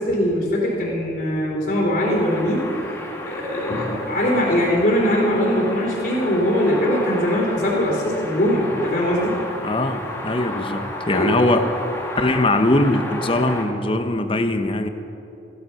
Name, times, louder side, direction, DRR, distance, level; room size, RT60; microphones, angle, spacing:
voice 1, 0.0-2.7 3.3-9.3 11.1-11.5, equal, 55° left, -4 dB, 3.6 m, -21 dB
sound 1, 2.0-13.6, left 1 dB, 15° left, 1.7 m, -32 dB
voice 2, 9.6-11.6 12.2-14.9, left 2 dB, 30° left, 8 dB, 0.8 m, -21 dB
15.5 x 12.5 x 5.6 m, 2.9 s
head